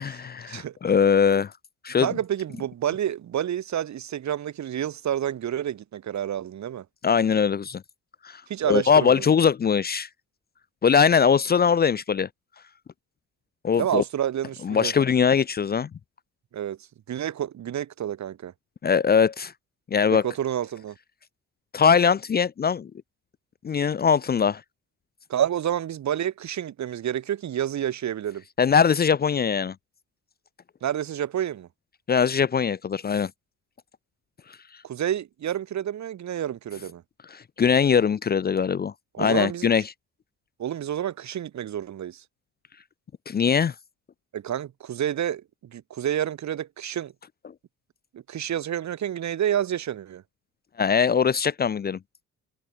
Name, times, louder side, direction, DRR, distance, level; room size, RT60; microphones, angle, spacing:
voice 1, 0.0-1.5 1.8-2.1 7.0-7.8 8.2-8.4 8.7-10.1 10.8-12.3 13.6-14.0 14.6-15.9 18.8-19.5 19.9-20.2 21.7-22.9 23.6-24.6 28.6-29.7 32.1-33.3 37.3-38.9 39.2-39.8 43.3-43.7 50.8-52.0, left 6 dB, 30° left, 0.6 m, -21 dB
voice 2, 2.0-6.8 8.5-9.2 13.8-14.9 16.5-16.8 17.1-18.5 20.1-21.0 25.3-28.4 30.8-31.7 34.8-37.0 39.1-39.7 40.6-42.2 44.3-47.1 48.1-50.2, right 10 dB, 65° right, 5.8 m, -29 dB
cardioid pair, 90°, 30 cm